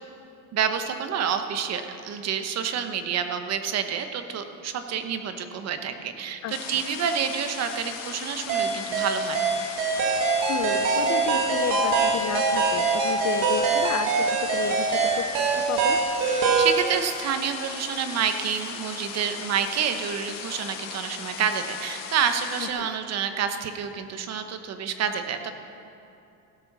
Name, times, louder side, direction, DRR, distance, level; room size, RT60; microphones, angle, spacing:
voice 1, 0.5-9.4 16.3-25.5, right 7 dB, 50° right, 7 dB, 1.0 m, -28 dB
sound 1, 6.5-22.7, left 7 dB, 75° left, 1.3 m, -38 dB
sound 2, 8.5-16.8, right 4 dB, 85° right, 1.8 m, -23 dB
voice 2, 10.5-15.3 15.5-16.0 22.6-22.9, left 9 dB, 50° left, 10 dB, 0.7 m, -32 dB
16.0 x 6.9 x 6.1 m, 2.7 s
cardioid pair, 135°, 34 cm